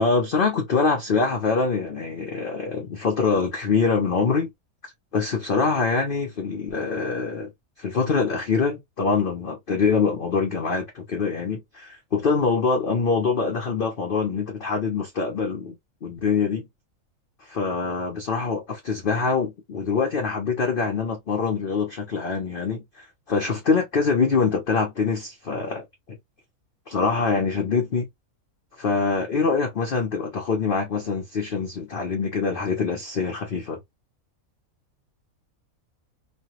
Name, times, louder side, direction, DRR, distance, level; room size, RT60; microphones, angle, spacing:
voice 1, 0.0-4.5 5.1-7.5 7.8-15.7 16.0-16.7 17.4-25.8 26.9-28.1 28.8-33.8, left 4 dB, 50° left, 0.7 m, -24 dB
3.2 x 2.2 x 2.8 m
omnidirectional pair, 1.5 m